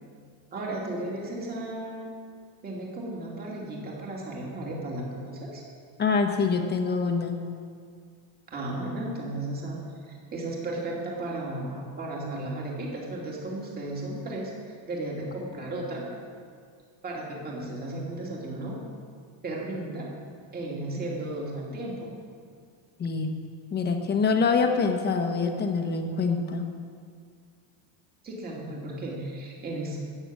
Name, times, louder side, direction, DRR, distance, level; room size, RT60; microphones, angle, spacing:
voice 1, 0.5-2.1 2.6-5.6 8.5-16.0 17.0-18.8 19.4-20.1 20.5-22.1 28.2-30.0, right 2 dB, 20° right, -3 dB, 2.7 m, -34 dB
voice 2, 6.0-7.4 23.0-23.3 23.7-26.7, left 4 dB, 25° left, 4 dB, 1.2 m, -25 dB
14.0 x 8.9 x 7.5 m, 2.1 s
cardioid pair, 160°, 42 cm